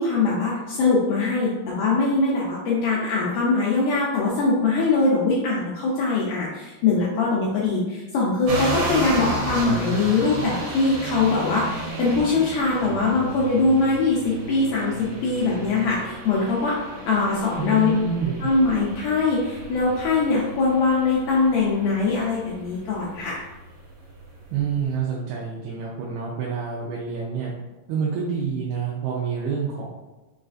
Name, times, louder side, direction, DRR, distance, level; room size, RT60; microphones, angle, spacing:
voice 1, 0.0-16.8 17.1-17.9 18.4-23.4, left 3 dB, 85° left, -5 dB, 1.8 m, -22 dB
sound 1, 8.5-25.0, right 2 dB, 70° right, 2.6 m, -34 dB
voice 2, 17.6-18.5 24.5-27.5 27.9-29.9, right 6 dB, 90° right, -5 dB, 2.5 m, -27 dB
6.2 x 2.4 x 2.4 m, 1.1 s
omnidirectional pair, 4.3 m